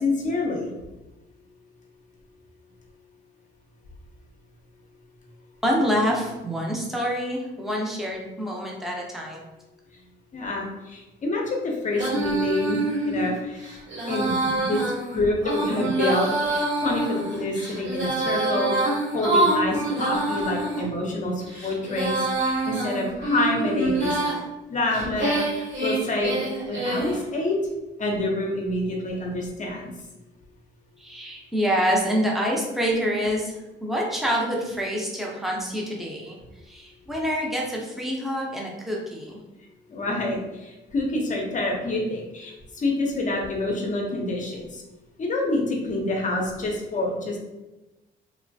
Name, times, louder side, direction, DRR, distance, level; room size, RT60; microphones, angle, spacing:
voice 1, 0.0-0.7 10.3-12.8 13.1-13.6 14.1-14.8 15.1-24.2 24.7-26.4 26.7-27.6 28.0-29.9 39.9-44.8 45.2-47.4, left 2 dB, 40° left, 0 dB, 0.6 m, -27 dB
voice 2, 5.6-9.5 31.0-33.5 33.8-39.4, equal, ahead, -2 dB, 0.6 m, -26 dB
Female singing, 11.9-20.8 21.4-24.4 24.9-27.2, right 2 dB, 65° right, 1.5 m, -26 dB
3.1 x 2.1 x 2.6 m, 1.1 s
cardioid pair, 90°, 20 cm